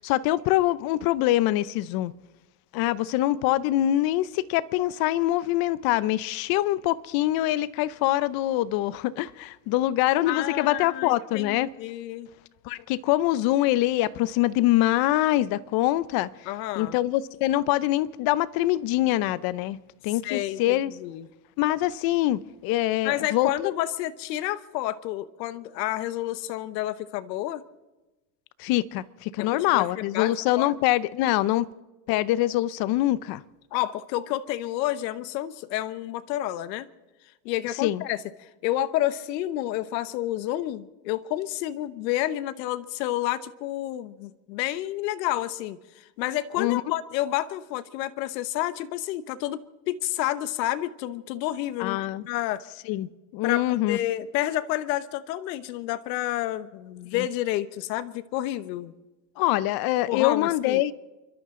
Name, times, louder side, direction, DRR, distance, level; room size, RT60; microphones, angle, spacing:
voice 1, 0.0-2.1 2.7-11.7 12.7-16.3 16.8-19.8 20.0-20.9 21.6-23.7 28.6-31.7 32.1-33.4 37.8-38.0 46.6-46.8 51.8-52.2 52.9-54.0 59.4-60.9, left 15 dB, 45° left, 0.7 m, -24 dB
voice 2, 10.3-12.3 16.5-17.0 20.2-21.3 23.0-27.6 29.4-30.7 33.7-36.9 37.4-52.0 52.3-52.6 53.4-58.9 60.1-60.8, left 14 dB, 85° left, 1.1 m, -30 dB
29.0 x 12.5 x 3.8 m
supercardioid pair, 140°, 49 cm